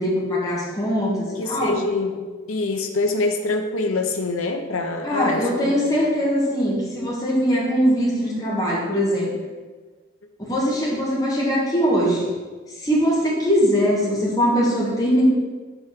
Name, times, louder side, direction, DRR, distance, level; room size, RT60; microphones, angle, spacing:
voice 1, 0.0-1.8 5.0-9.3 10.4-12.3 12.8-15.2, equal, 15° left, -5 dB, 1.5 m, -21 dB
voice 2, 1.4-2.2 2.5-5.8 6.6-6.8, left 3 dB, 90° left, 5 dB, 0.8 m, -25 dB
5.4 x 4.5 x 5.9 m, 1.4 s
head